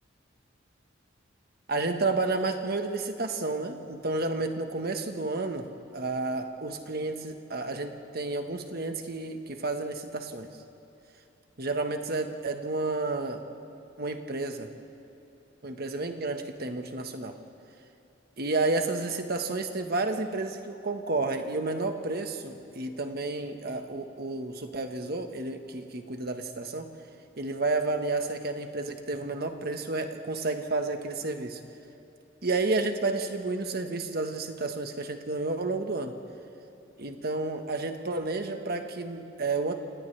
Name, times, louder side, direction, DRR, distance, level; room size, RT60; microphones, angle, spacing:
voice 1, 1.7-10.5 11.6-13.4 14.0-14.7 15.6-17.4 18.4-26.9 27.4-31.6 32.4-36.2 37.0-39.7, right 3 dB, 55° right, 5 dB, 1.5 m, -31 dB
28.5 x 28.0 x 3.4 m, 2.9 s
head